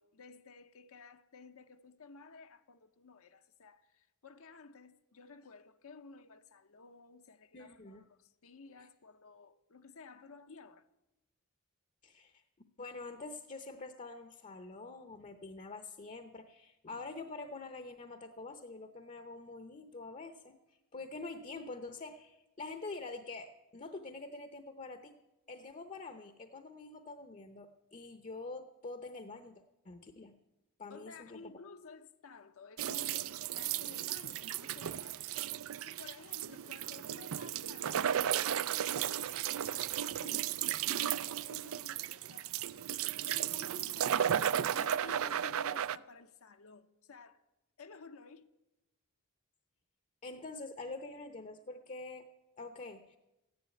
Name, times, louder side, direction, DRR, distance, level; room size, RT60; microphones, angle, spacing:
voice 1, 0.0-10.9 30.9-42.8 43.3-47.4 47.8-48.5, left 4 dB, 65° left, 0.8 m, -54 dB
voice 2, 7.5-8.0 12.0-12.4 12.8-20.6 20.9-25.2 25.5-30.3 30.8-31.4 50.2-52.3 52.6-53.2, left 3 dB, 35° left, 0.8 m, -46 dB
sound 1, 32.8-46.0, right 10 dB, 65° right, 0.4 m, -34 dB
14.5 x 10.5 x 9.0 m
head